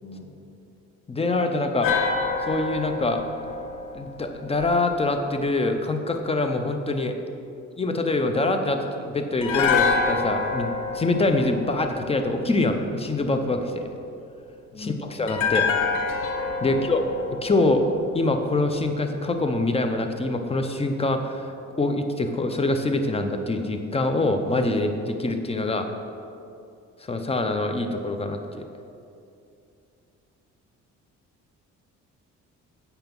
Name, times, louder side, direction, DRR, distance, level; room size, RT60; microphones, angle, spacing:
voice 1, 0.0-0.4 14.7-15.1 16.6-17.0, left 2 dB, 50° left, -1 dB, 1.6 m, -39 dB
voice 2, 1.1-1.9 2.4-3.2 3.9-7.1 7.8-13.9 14.8-15.7 16.6-17.0 17.4-17.9 18.1-21.5 21.8-25.9 27.1-28.6, left 2 dB, 20° left, 6 dB, 0.8 m, -24 dB
sound 1, 1.8-5.0 9.4-12.6 15.3-18.5 18.8-18.9, left 5 dB, 85° left, 0.9 m, -27 dB
7.9 x 5.7 x 5.3 m, 2.6 s
cardioid pair, 90°, 30 cm